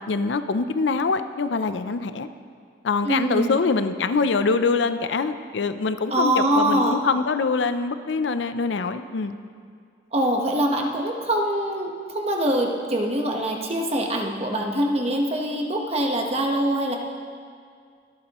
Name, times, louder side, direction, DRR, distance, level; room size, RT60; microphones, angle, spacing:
voice 1, 0.1-2.3 2.8-9.4, left 4 dB, 75° left, 11 dB, 0.5 m, -24 dB
voice 2, 3.0-3.6 6.1-7.0 10.1-17.0, right 1 dB, 35° right, 1 dB, 1.2 m, -24 dB
23.0 x 8.5 x 3.0 m, 2.2 s
head